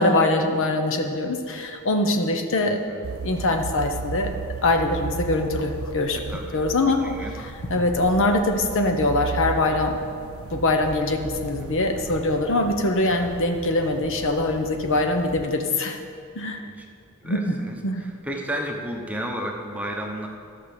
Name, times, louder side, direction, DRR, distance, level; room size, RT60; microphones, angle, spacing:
voice 1, 0.0-2.8 3.2-4.3 4.6-6.2 6.5-9.9 10.5-16.0 16.3-16.7 17.2-17.6 17.8-18.0, left 2 dB, 60° left, 5 dB, 0.9 m, -23 dB
voice 2, 2.6-3.0 6.1-6.6 7.0-7.4 11.6-11.9 13.1-13.3 16.6-16.9 17.2-20.3, equal, 5° right, 1 dB, 0.9 m, -33 dB
sound 1, 3.0-15.5, right 5 dB, 65° right, 0.4 m, -36 dB
13.0 x 5.8 x 6.8 m, 2.3 s
head